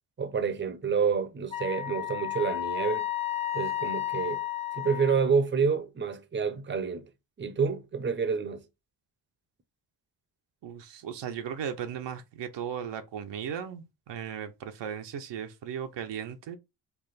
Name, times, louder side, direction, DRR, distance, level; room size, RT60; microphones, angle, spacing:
voice 1, 0.2-3.1 3.5-4.4 4.8-7.0 7.4-8.6, right 5 dB, 25° right, 0.7 m, -28 dB
Wind instrument woodwind instrument, 1.5-5.4, left 13 dB, 15° left, 0.4 m, -32 dB
voice 2, 10.6-16.6, right 8 dB, 75° right, 0.8 m, -36 dB
3.4 x 2.4 x 4.0 m
cardioid pair, 65°, 43 cm